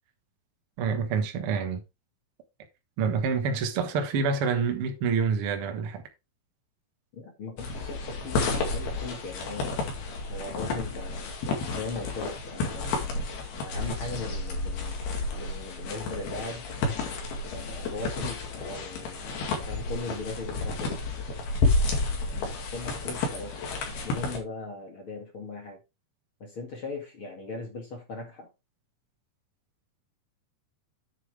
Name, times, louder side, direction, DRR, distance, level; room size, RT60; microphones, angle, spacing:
voice 1, 0.8-1.8 3.0-6.0, right 5 dB, 55° right, 1.6 m, -27 dB
voice 2, 7.1-15.0 15.3-16.7 17.5-21.0 22.1-25.8 26.4-28.5, left 3 dB, 45° left, 2.2 m, -39 dB
sound 1, 7.6-24.4, left 3 dB, 85° left, 4.2 m, -31 dB
9.4 x 6.6 x 3.4 m
omnidirectional pair, 4.3 m